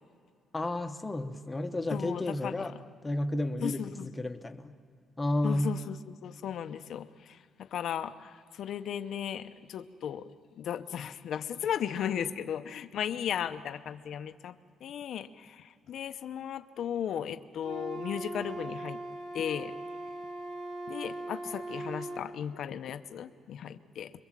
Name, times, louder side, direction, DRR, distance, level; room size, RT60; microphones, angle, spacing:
voice 1, 0.5-2.7 3.0-4.7 5.2-5.7, left 1 dB, 15° left, 7 dB, 1.0 m, -32 dB
voice 2, 1.9-2.8 3.6-4.1 5.4-19.0 19.3-19.7 20.9-24.1, left 9 dB, 55° left, 10 dB, 0.7 m, -36 dB
Wind instrument woodwind instrument, 17.6-22.3, right 1 dB, 65° right, 2.7 m, -39 dB
26.5 x 22.5 x 7.5 m, 2.2 s
cardioid pair, 165°, 0 cm